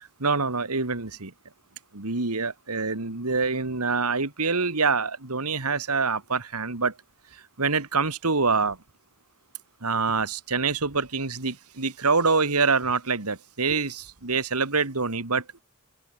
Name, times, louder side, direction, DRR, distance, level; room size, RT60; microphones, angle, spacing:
voice 1, 0.2-1.3 1.9-6.9 7.6-8.8 9.8-15.4, right 4 dB, 85° right, 2.4 m, -25 dB
open air
head